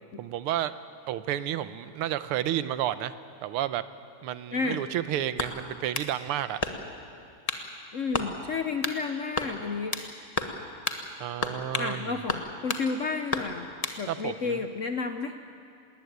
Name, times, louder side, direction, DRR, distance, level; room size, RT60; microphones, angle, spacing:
voice 1, 0.2-0.7 1.1-3.1 3.4-3.8 4.2-6.6 11.2-12.2 14.1-14.6, right 12 dB, 90° right, 14 dB, 1.7 m, -31 dB
voice 2, 4.5-4.8 7.9-9.9 11.8-13.7 14.0-15.3, left 4 dB, 70° left, 7 dB, 0.7 m, -31 dB
sound 1, 5.4-6.1 6.6-7.0 7.5-7.7 8.1-8.3 8.8-9.0 9.4-10.1 10.4-10.6 10.9-11.0 11.4-11.9 12.3-12.9 13.3-14.0, left 3 dB, 25° left, 0.9 m, -31 dB
19.5 x 19.0 x 9.4 m, 2.5 s
omnidirectional pair, 2.4 m